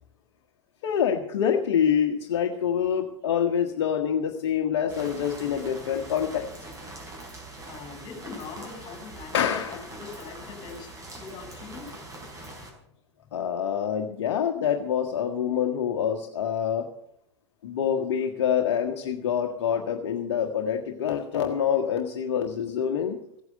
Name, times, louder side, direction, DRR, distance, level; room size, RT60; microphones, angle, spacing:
voice 1, 0.8-6.5 9.3-9.8 13.3-16.9 17.6-23.2, left 8 dB, 60° left, 3 dB, 1.4 m, -26 dB
sound 1, 4.9-12.7, right 2 dB, 20° right, 4.5 m, -43 dB
voice 2, 7.6-11.9 12.8-12.9 13.2-13.4, left 5 dB, 30° left, 3 dB, 5.3 m, -43 dB
15.5 x 9.6 x 6.6 m, 0.72 s
figure-of-eight pair, 90°, 15 cm